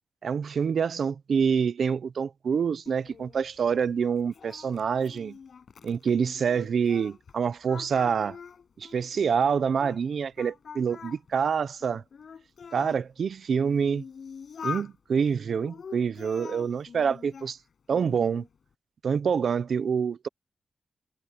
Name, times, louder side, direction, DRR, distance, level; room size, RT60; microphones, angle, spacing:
voice 1, 0.2-5.4 5.8-8.4 8.8-12.0 12.7-14.0 14.6-17.6 17.9-18.4 19.0-20.3, right 6 dB, 85° right, 0.7 m, -26 dB
Singing, 2.9-7.4 7.7-10.0 10.4-13.0 13.6-14.9 15.5-17.5 17.9-18.5, left 6 dB, 75° left, 7.0 m, -44 dB
wide cardioid pair, 120°, 0 cm